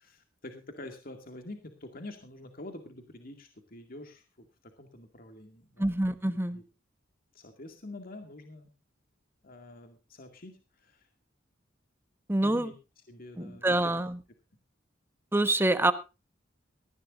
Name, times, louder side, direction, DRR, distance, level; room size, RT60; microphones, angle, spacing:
voice 1, 0.0-4.5 4.8-5.9 6.3-6.6 7.3-8.7 9.4-11.1 12.4-12.7 13.1-13.6, left 2 dB, 50° left, 5 dB, 2.2 m, -46 dB
voice 2, 5.8-6.6 12.3-12.7 13.4-14.2 15.3-15.9, right 1 dB, 10° right, 10 dB, 1.2 m, -26 dB
18.5 x 15.0 x 2.6 m, 0.29 s
head